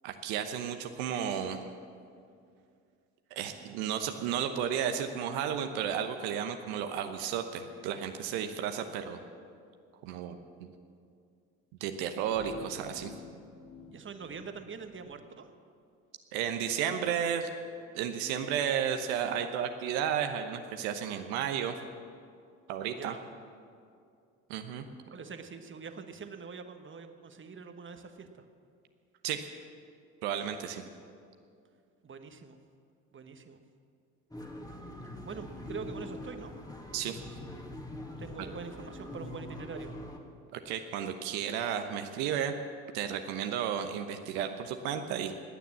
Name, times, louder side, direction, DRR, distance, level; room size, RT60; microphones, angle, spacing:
voice 1, 0.0-1.6 3.3-9.2 10.0-10.7 11.8-13.1 16.3-17.5 17.9-21.8 22.7-23.1 24.5-24.8 29.2-29.5 30.2-30.8 36.9-37.2 38.4-38.5 40.6-42.5 42.9-45.3, right 8 dB, 70° right, 6 dB, 1.0 m, -33 dB
sound 1, 12.3-15.2, left 5 dB, 35° left, 2.0 m, -49 dB
voice 2, 13.9-15.5 23.0-23.2 25.1-28.4 32.0-32.6 33.1-33.6 35.2-36.5 38.2-39.9, right 5 dB, 30° right, 7 dB, 1.3 m, -44 dB
sound 2, 34.3-40.2, left 1 dB, 10° left, 2.1 m, -43 dB
17.0 x 9.4 x 7.4 m, 2.4 s
hypercardioid pair, 60°, 40 cm